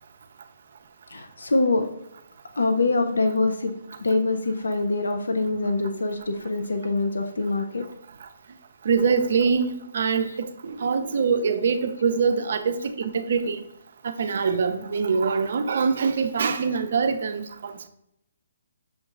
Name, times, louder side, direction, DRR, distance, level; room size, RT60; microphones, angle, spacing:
voice 1, 1.1-1.9 2.6-3.7 4.0-7.9 10.3-10.4, left 2 dB, 90° left, 0.5 m, -24 dB
voice 2, 8.8-13.6 14.0-17.9, right 5 dB, 60° right, 0.4 m, -24 dB
6.4 x 3.0 x 2.4 m
hypercardioid pair, 150°, 0 cm